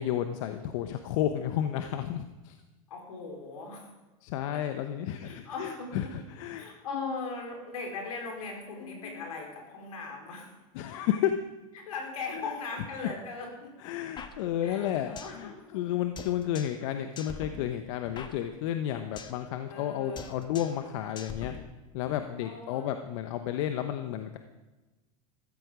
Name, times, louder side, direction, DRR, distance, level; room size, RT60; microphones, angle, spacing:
voice 1, 0.0-2.6 4.2-6.7 6.9-7.2 8.8-9.3 10.7-11.3 12.3-12.5 13.8-21.5 21.9-24.4, left 11 dB, 65° left, 8 dB, 1.0 m, -32 dB
voice 2, 2.9-3.9 4.5-4.6 5.1-5.9 6.5-10.6 11.7-13.7 14.6-15.8 19.7-20.4 22.4-22.9, left 4 dB, 85° left, 1 dB, 4.4 m, -39 dB
sound 1, 14.2-15.4 15.7-15.8 16.2-16.9 17.2-19.4 19.7-19.9 20.2-20.9 21.2-22.2, left 5 dB, 25° left, 1.3 m, -44 dB
14.5 x 13.0 x 5.0 m, 1.2 s
hypercardioid pair, 110°, 18 cm